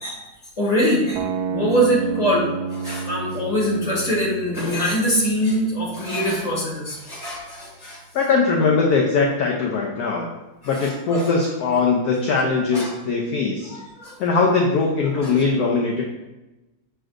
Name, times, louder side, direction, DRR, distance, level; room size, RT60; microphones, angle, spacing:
voice 1, 0.6-8.0 10.8-11.3 12.7-12.9 13.7-14.2 15.1-15.5, equal, 20° left, -4 dB, 1.9 m, -23 dB
sound 1, 1.2-7.2, right 5 dB, 70° right, 1.0 m, -31 dB
voice 2, 8.1-10.3 10.6-13.7 14.2-16.0, left 4 dB, 65° left, 0 dB, 1.0 m, -20 dB
7.7 x 6.2 x 2.5 m, 1.0 s
omnidirectional pair, 2.2 m